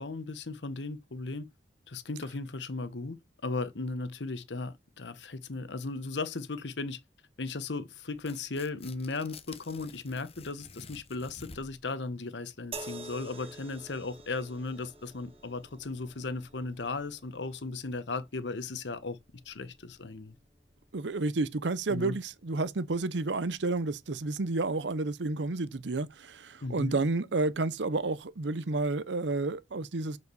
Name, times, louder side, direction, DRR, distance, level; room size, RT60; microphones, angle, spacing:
voice 1, 0.0-1.5 1.9-3.2 3.4-7.0 7.4-19.2 19.4-20.3 21.9-22.1 26.6-27.0, left 3 dB, 80° left, 1.0 m, -36 dB
Tearing, 8.1-11.9, left 4 dB, 35° left, 1.0 m, -50 dB
sound 1, 12.7-26.1 27.0-27.2, right 3 dB, 35° right, 1.7 m, -51 dB
voice 2, 20.9-30.2, right 3 dB, 90° right, 0.7 m, -31 dB
6.6 x 5.1 x 6.9 m
head